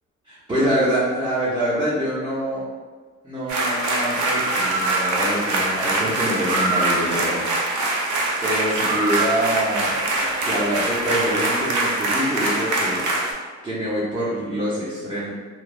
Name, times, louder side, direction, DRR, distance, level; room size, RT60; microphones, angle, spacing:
voice 1, 0.2-2.6 3.2-7.5 8.4-9.9 10.4-13.0 13.6-15.3, equal, 15° right, -10 dB, 0.6 m, -25 dB
sound 1, 3.5-13.3, right 2 dB, 75° right, 0.6 m, -23 dB
3.1 x 2.0 x 2.3 m, 1.4 s
cardioid pair, 90°, 30 cm